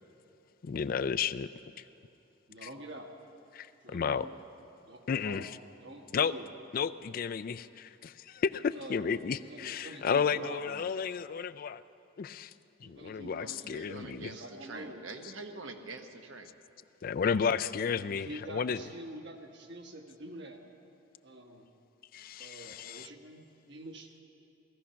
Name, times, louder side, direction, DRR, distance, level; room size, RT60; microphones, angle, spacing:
voice 1, 0.6-1.5 2.6-2.7 3.5-4.3 5.1-5.5 6.1-6.3 6.7-11.8 12.2-12.5 12.8-14.3 17.0-18.8 22.1-23.1, left 6 dB, 45° left, 14 dB, 0.3 m, -32 dB
voice 2, 2.5-3.1 3.8-4.4 4.8-5.5 5.8-6.5 8.7-10.9 12.8-15.0 18.1-20.6 21.2-21.7 22.4-24.1, right 1 dB, 60° right, 2 dB, 1.5 m, -47 dB
voice 3, 13.2-16.5, right 3 dB, 80° right, 4 dB, 1.2 m, -45 dB
17.5 x 14.5 x 5.7 m, 2.7 s
head